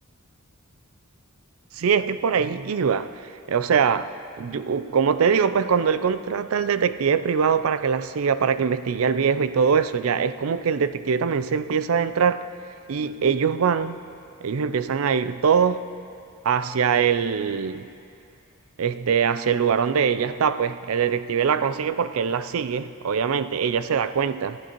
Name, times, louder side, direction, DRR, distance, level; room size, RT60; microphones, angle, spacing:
voice 1, 1.7-3.2 3.5-12.4 12.9-14.0 14.4-15.8 16.4-17.9 18.8-24.6, right 6 dB, 75° right, 0.4 m, -23 dB
23.5 x 11.5 x 3.0 m
head